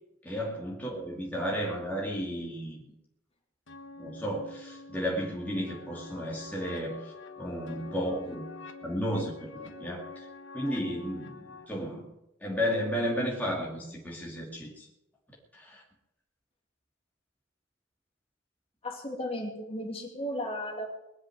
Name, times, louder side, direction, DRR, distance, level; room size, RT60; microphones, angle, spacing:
voice 1, 0.2-2.8 4.0-7.0 7.4-8.4 8.8-10.0 10.5-12.1 12.4-14.9 15.5-15.8, equal, 10° left, -4 dB, 2.6 m, -33 dB
sound 1, 3.7-11.6, left 3 dB, 60° left, 1.3 m, -46 dB
voice 2, 18.8-20.8, left 1 dB, 30° left, 1 dB, 2.9 m, -35 dB
21.0 x 7.4 x 9.3 m, 0.90 s
head